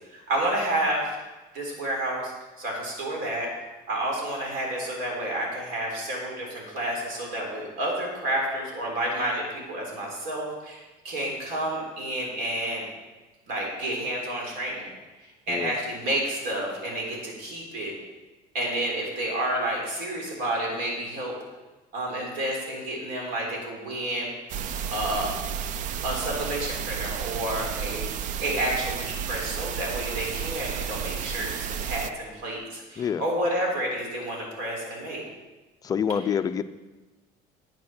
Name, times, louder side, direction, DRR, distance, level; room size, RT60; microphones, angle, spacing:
voice 1, 0.1-1.1 1.5-3.5 3.9-12.8 13.5-14.9 15.5-17.9 18.5-21.3 21.9-24.3 24.9-25.3 26.0-28.1 28.4-35.2, right 1 dB, 65° right, -1 dB, 3.7 m, -30 dB
sound 1, 24.5-32.1, right 8 dB, 45° right, 0.5 m, -32 dB
voice 2, 35.8-36.6, left 7 dB, 20° left, 10 dB, 0.4 m, -26 dB
9.6 x 9.4 x 6.0 m, 1.2 s
cardioid pair, 165°, 17 cm